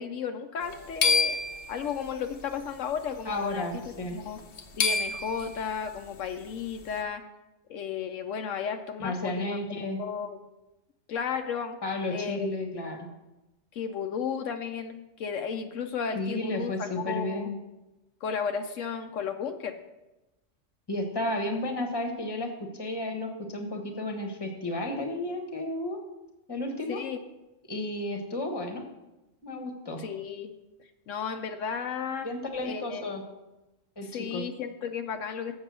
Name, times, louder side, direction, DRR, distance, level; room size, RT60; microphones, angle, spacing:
voice 1, 0.0-1.4 1.7-3.6 4.1-4.4 4.7-7.2 7.7-9.6 10.0-10.4 11.1-11.8 12.1-12.5 13.7-17.5 18.2-19.8 26.9-27.2 30.0-30.5 31.1-32.3 32.6-33.1 34.1-35.6, left 7 dB, 75° left, 6 dB, 1.0 m, -34 dB
sound 1, 0.6-2.3 3.3-3.5 3.8-3.9 4.4-5.6, left 4 dB, 55° left, 0.9 m, -27 dB
voice 2, 3.2-4.2 9.0-10.0 11.8-13.0 16.1-17.6 20.9-26.0 26.5-27.0 27.7-28.9 29.4-30.0 32.2-33.2 34.0-34.4, left 1 dB, 20° left, 3 dB, 1.1 m, -32 dB
7.4 x 6.6 x 6.1 m, 1.0 s
omnidirectional pair, 1.3 m